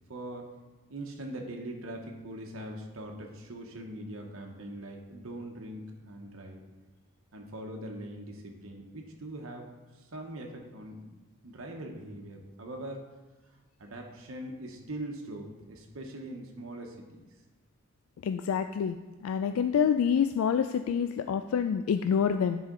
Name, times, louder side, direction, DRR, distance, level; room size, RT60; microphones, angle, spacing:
voice 1, 0.1-0.5 0.9-6.6 7.3-9.7 9.9-11.1 11.4-13.0 13.8-17.3, right 1 dB, 75° right, 1 dB, 1.0 m, -42 dB
voice 2, 18.2-19.0 19.2-22.6, left 7 dB, 85° left, 9 dB, 0.3 m, -27 dB
10.0 x 5.0 x 3.8 m, 1.2 s
head